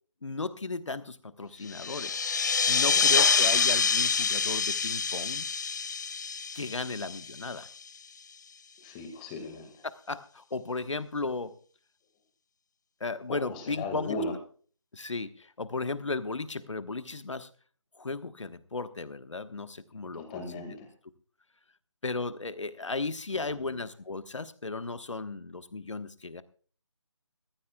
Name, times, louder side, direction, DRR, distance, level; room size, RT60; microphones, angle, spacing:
voice 1, 0.2-2.2 2.7-5.4 6.5-7.7 10.1-11.6 13.0-14.1 14.9-17.5 18.0-20.4 22.0-26.4, left 3 dB, 75° left, 12 dB, 1.2 m, -35 dB
sound 1, 1.7-7.8, left 5 dB, 35° left, 0.7 m, -26 dB
voice 2, 8.8-9.8 13.3-14.3 20.1-20.9 23.5-23.7, left 2 dB, 15° left, 5 dB, 1.8 m, -37 dB
21.0 x 14.5 x 2.3 m, 0.42 s
figure-of-eight pair, 160°, 16 cm